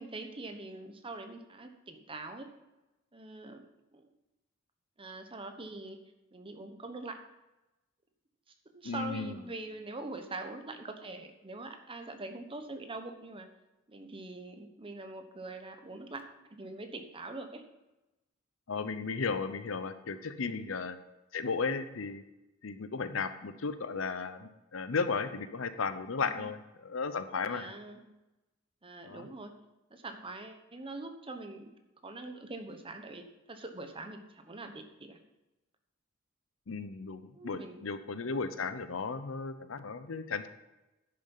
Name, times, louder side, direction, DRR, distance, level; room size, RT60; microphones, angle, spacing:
voice 1, 0.0-2.5 3.1-3.6 3.9-4.0 5.0-6.0 6.3-7.2 8.7-13.5 13.9-16.2 16.5-17.6 20.4-20.7 26.2-26.5 27.5-28.0 28.8-29.5 29.9-31.7 32.0-35.2 37.3-37.9, right 2 dB, 25° right, 6 dB, 1.0 m, -43 dB
voice 2, 8.8-9.4 18.7-21.0 21.3-22.2 22.6-27.7 29.1-29.3 36.7-40.5, left 4 dB, 75° left, 11 dB, 0.7 m, -35 dB
10.5 x 6.8 x 5.6 m, 1.0 s
head